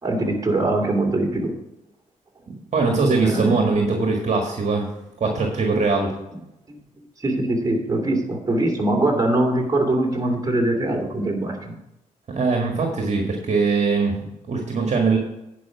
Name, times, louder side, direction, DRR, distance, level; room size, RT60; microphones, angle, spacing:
voice 1, 0.0-1.6 2.9-3.0 3.2-3.5 7.2-11.8, right 2 dB, 25° right, 0 dB, 2.8 m, -22 dB
voice 2, 2.5-4.9 5.2-6.1 12.3-15.2, right 4 dB, 55° right, 2 dB, 1.7 m, -21 dB
10.0 x 5.3 x 5.9 m, 0.87 s
supercardioid pair, 60°, 14 cm